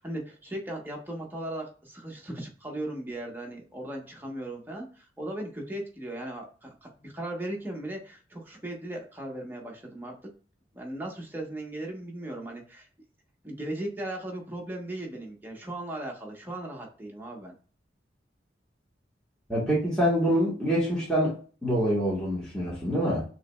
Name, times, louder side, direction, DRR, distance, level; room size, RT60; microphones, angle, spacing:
voice 1, 0.0-10.3 10.7-12.9 13.4-17.5, right 1 dB, 10° right, -1 dB, 1.1 m, -37 dB
voice 2, 19.5-23.2, equal, 5° left, -8 dB, 1.5 m, -26 dB
6.0 x 3.1 x 2.3 m, 0.38 s
head